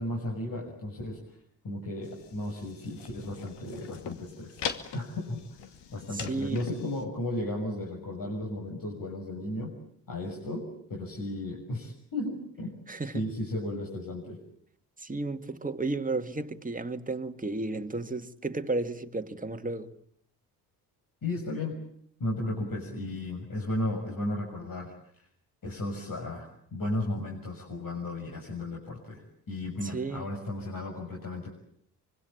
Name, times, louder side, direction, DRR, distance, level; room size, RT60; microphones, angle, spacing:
voice 1, 0.0-1.4 1.6-4.6 4.9-5.4 5.9-9.8 10.1-12.8 13.1-14.4 21.2-21.8 22.2-24.9 25.6-31.5, left 1 dB, 45° left, 6.7 m, -34 dB
sound 1, 2.0-7.0, left 8 dB, 65° left, 2.5 m, -41 dB
voice 2, 6.1-6.7 12.9-13.2 15.0-19.9 29.8-30.3, right 3 dB, 15° right, 2.1 m, -33 dB
25.0 x 24.0 x 8.8 m
hypercardioid pair, 50°, 46 cm